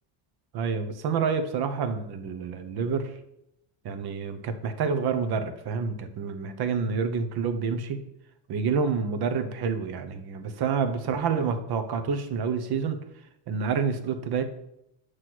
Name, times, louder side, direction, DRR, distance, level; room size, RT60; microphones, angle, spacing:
voice 1, 0.5-3.1 3.8-8.0 8.5-13.0 13.5-14.4, right 5 dB, 50° right, 9 dB, 0.8 m, -28 dB
7.5 x 3.2 x 6.0 m, 0.82 s
cardioid pair, 145°, 50 cm